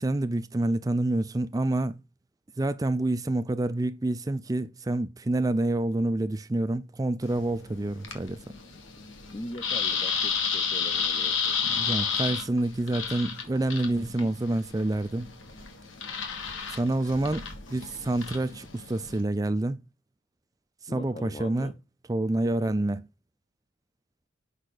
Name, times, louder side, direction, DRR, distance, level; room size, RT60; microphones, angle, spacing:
voice 1, 0.0-2.0 2.6-8.4 11.7-15.3 16.7-19.8 20.8-21.7 22.1-23.1, right 2 dB, 15° right, 0.4 m, -28 dB
sound 1, 7.2-19.2, left 6 dB, 70° left, 1.6 m, -32 dB
voice 2, 9.3-11.6 14.2-14.4 20.9-21.8, left 1 dB, 30° left, 0.6 m, -41 dB
6.5 x 5.4 x 4.0 m
head